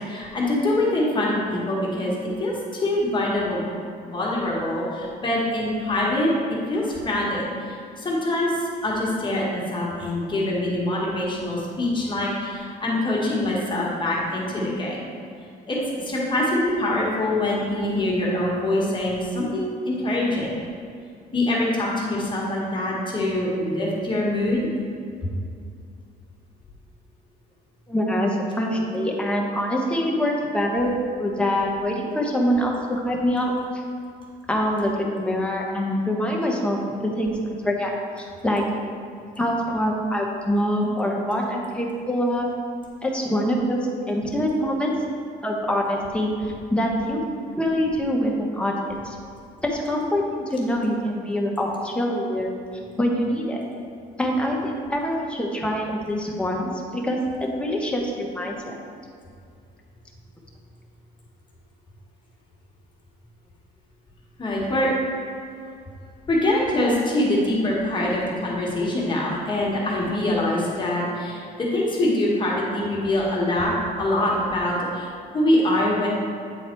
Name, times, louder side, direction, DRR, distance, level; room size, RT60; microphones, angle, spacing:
voice 1, 0.0-3.6 4.0-6.3 6.7-15.1 15.7-20.5 21.3-24.7 64.4-64.9 66.3-73.7 74.0-76.1, left 1 dB, 30° left, -4 dB, 1.6 m, -24 dB
voice 2, 27.9-33.8 34.5-37.9 38.2-38.6 39.4-42.5 43.0-43.8 44.1-44.9 45.4-47.2 47.6-49.2 49.6-52.5 53.0-53.6 54.2-58.8, equal, 5° left, -1 dB, 1.1 m, -25 dB
8.6 x 4.0 x 4.5 m, 2.4 s
cardioid pair, 110°, 17 cm